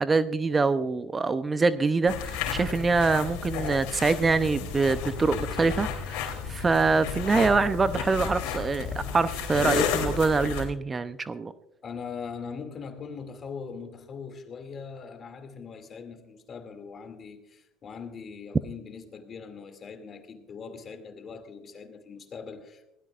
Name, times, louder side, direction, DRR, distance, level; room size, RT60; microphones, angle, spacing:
voice 1, 0.0-11.5, right 4 dB, 25° right, 0.6 m, -25 dB
sound 1, 2.1-10.6, left 7 dB, 75° left, 3.2 m, -32 dB
voice 2, 11.8-22.9, left 5 dB, 40° left, 2.5 m, -41 dB
21.0 x 16.5 x 2.5 m
hypercardioid pair, 80°, 0 cm